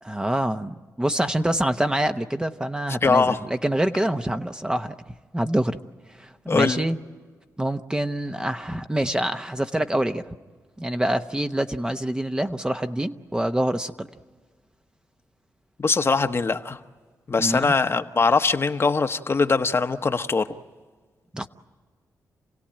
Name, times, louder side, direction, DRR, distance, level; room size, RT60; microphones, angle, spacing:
voice 1, 0.0-5.8 6.2-7.0 7.6-10.3 10.8-14.1 17.4-17.7 21.3-21.5, right 1 dB, 10° right, 8 dB, 0.9 m, -26 dB
voice 2, 3.0-3.4 6.5-6.9 15.8-16.8 17.3-20.4, left 4 dB, 40° left, 8 dB, 1.1 m, -21 dB
29.0 x 17.0 x 8.9 m, 1.5 s
cardioid pair, 75°, 7 cm